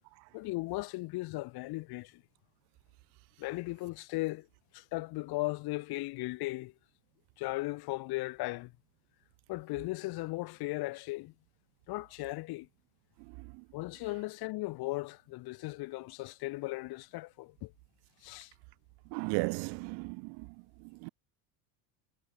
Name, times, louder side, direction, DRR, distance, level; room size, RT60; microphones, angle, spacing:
voice 1, 0.3-2.2 3.4-4.5 4.7-6.7 7.4-8.7 9.5-11.3 11.9-12.7 13.7-17.7 18.2-18.5, left 21 dB, 50° left, 2.4 m, -37 dB
voice 2, 19.1-20.5 20.8-21.1, right 35 dB, 60° right, 0.7 m, -35 dB
cardioid pair, 145°, 46 cm